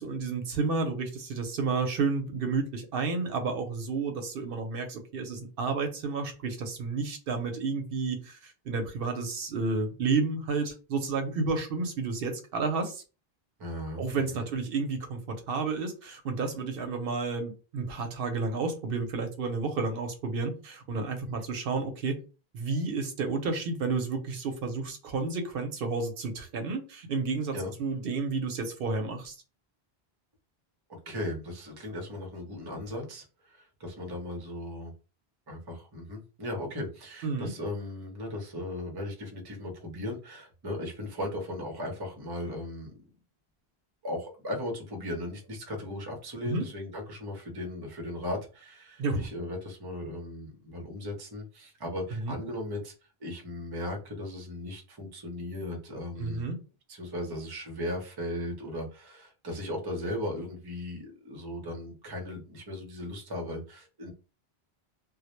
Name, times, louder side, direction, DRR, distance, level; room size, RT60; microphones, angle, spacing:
voice 1, 0.0-13.0 14.0-22.1 22.5-29.4 37.2-37.5 46.4-46.6 49.0-49.3 52.1-52.4 56.2-56.6, right 4 dB, 70° right, 6 dB, 0.7 m, -31 dB
voice 2, 13.6-14.5 27.5-27.7 31.1-34.9 35.5-42.9 44.0-52.9 53.2-56.4 56.9-64.1, left 1 dB, 30° right, 2 dB, 0.5 m, -37 dB
2.1 x 2.0 x 2.9 m, 0.33 s
omnidirectional pair, 1.0 m